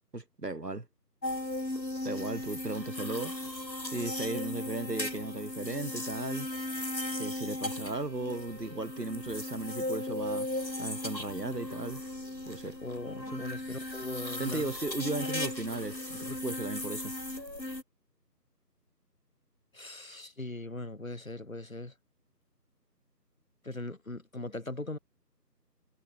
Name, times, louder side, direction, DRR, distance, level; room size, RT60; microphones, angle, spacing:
voice 1, 0.1-0.9 2.0-3.3 3.9-6.5 7.2-10.5 10.8-12.0 12.5-12.8 13.3-13.4 14.4-17.1, right 2 dB, 70° right, 2.4 m, -36 dB
sound 1, 1.2-17.8, left 1 dB, 85° left, 4.6 m, -37 dB
voice 2, 12.8-14.7 19.7-21.9 23.6-25.0, left 2 dB, 50° left, 3.0 m, -40 dB
figure-of-eight pair, 170°, 50 cm